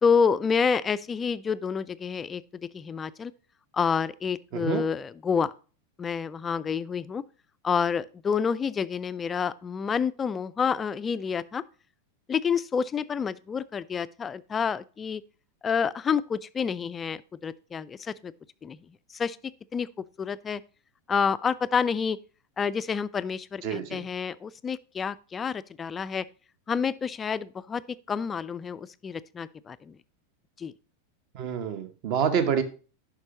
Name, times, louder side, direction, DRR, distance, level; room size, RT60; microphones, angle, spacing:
voice 1, 0.0-2.4 2.7-3.3 3.7-5.5 6.0-7.2 7.6-11.6 12.3-15.2 15.6-18.3 18.6-18.8 19.1-19.4 19.7-19.9 20.2-20.6 21.1-22.2 22.6-26.2 26.7-27.8 28.1-30.0 30.6-30.7, left 6 dB, 20° left, 0.3 m, -28 dB
voice 2, 4.5-4.8 23.6-24.0 31.3-32.6, right 7 dB, 45° right, 1.0 m, -27 dB
9.6 x 5.9 x 2.9 m
figure-of-eight pair, 90°, 0 cm